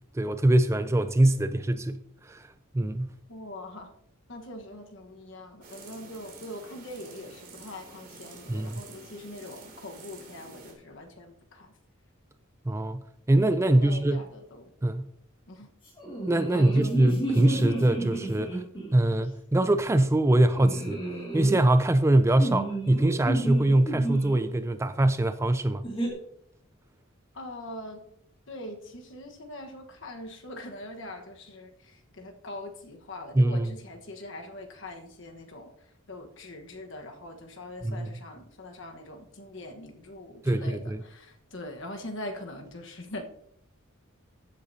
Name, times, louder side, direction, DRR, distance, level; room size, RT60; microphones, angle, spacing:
voice 1, 0.1-2.5 2.7-3.1 8.5-8.8 12.7-14.3 14.8-15.1 16.3-18.6 18.9-21.0 21.3-25.9 33.3-33.8 37.8-38.1 40.4-41.0, right 1 dB, 15° right, 0.3 m, -23 dB
voice 2, 3.3-3.9 4.3-11.7 13.4-14.7 15.5-15.7 16.5-17.0 27.3-28.1 28.5-35.7 36.1-43.2, left 1 dB, 60° left, 1.3 m, -42 dB
sound 1, 5.6-10.7, right 3 dB, 40° right, 2.7 m, -49 dB
sound 2, 16.0-19.0 20.5-21.6 22.3-24.4 25.8-26.1, right 1 dB, 25° left, 2.5 m, -32 dB
14.5 x 7.7 x 2.8 m
head